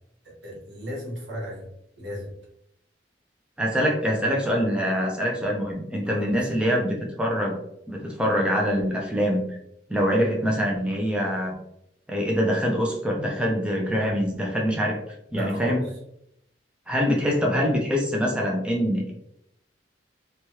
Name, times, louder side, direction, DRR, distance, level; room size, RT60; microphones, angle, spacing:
voice 1, 0.2-1.7 2.0-2.3 6.0-6.4 15.3-15.8, equal, 75° right, -3 dB, 1.2 m, -34 dB
voice 2, 3.6-7.6 7.9-9.6 9.9-11.6 12.1-15.0 15.3-15.8 16.9-19.1, equal, 5° right, -1 dB, 0.4 m, -24 dB
3.0 x 2.3 x 2.8 m, 0.77 s
head